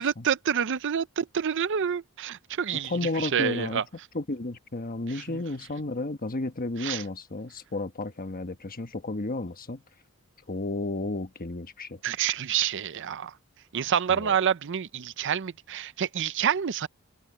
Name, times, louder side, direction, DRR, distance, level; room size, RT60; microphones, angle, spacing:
voice 1, 0.0-3.8 5.1-5.4 6.8-7.0 12.0-13.3 13.7-16.9, right 8 dB, 55° right, 0.5 m, -28 dB
voice 2, 2.7-3.8 4.1-9.8 10.5-12.0 14.1-14.4, left 2 dB, 40° left, 1.3 m, -32 dB
head